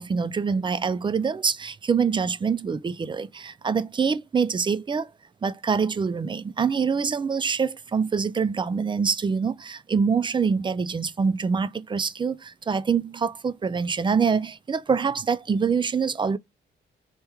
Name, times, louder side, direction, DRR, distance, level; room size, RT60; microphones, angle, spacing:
voice 1, 0.0-5.1 5.4-16.4, right 5 dB, 25° right, 0.3 m, -25 dB
3.3 x 2.2 x 3.0 m
cardioid pair, 70°, 21 cm